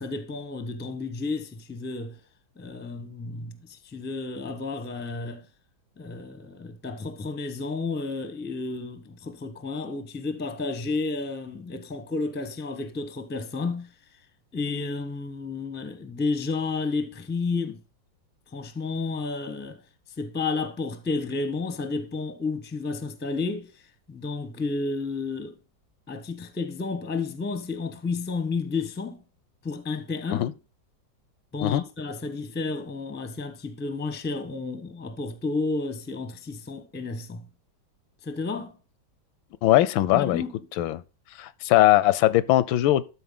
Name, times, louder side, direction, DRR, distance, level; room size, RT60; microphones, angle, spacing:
voice 1, 0.0-2.2 2.6-5.4 6.0-13.9 14.5-17.8 18.5-19.8 20.2-23.7 24.1-25.6 26.1-29.2 29.6-30.5 31.5-37.5 38.2-38.8 40.1-40.5, left 3 dB, 10° left, 0.5 m, -31 dB
voice 2, 39.6-40.4 40.8-41.0 41.4-43.0, left 15 dB, 85° left, 1.3 m, -20 dB
12.5 x 4.4 x 3.7 m
omnidirectional pair, 2.1 m